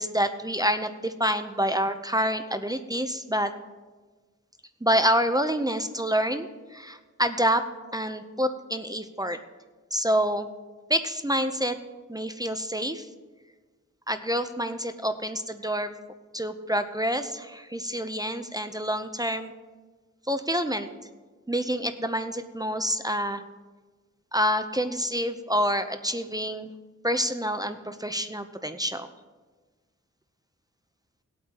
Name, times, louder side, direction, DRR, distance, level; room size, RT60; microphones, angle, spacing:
voice 1, 0.0-3.5 4.8-7.6 7.9-9.4 9.9-10.5 10.9-11.8 12.1-13.1 14.1-15.9 16.3-19.5 20.3-20.9 21.5-23.4 24.3-26.7 27.0-29.1, equal, 15° right, 8 dB, 0.7 m, -27 dB
19.5 x 8.4 x 3.0 m, 1.3 s
cardioid pair, 60°, 30 cm